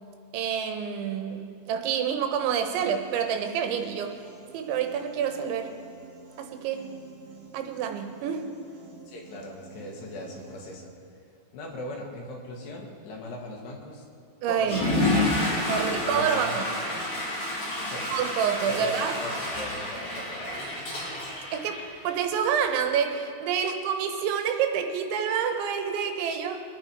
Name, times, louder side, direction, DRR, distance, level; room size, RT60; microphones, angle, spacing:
voice 1, 0.3-4.2 4.5-5.8 6.4-6.9 7.5-8.5 14.4-14.8 15.7-16.7 18.1-19.2 20.8-20.9 21.5-26.6, right 8 dB, 85° right, 6 dB, 3.3 m, -28 dB
Piano, 2.7-10.7, right 5 dB, 55° right, 2.7 m, -50 dB
voice 2, 9.1-10.9 11.5-14.0 14.5-15.3 15.9-17.1 17.9-18.1 18.8-20.6, left 1 dB, 65° left, -1 dB, 3.8 m, -39 dB
Water / Toilet flush, 14.6-22.3, left 1 dB, 35° left, 4.7 m, -29 dB
23.5 x 9.8 x 4.7 m, 2.3 s
omnidirectional pair, 5.3 m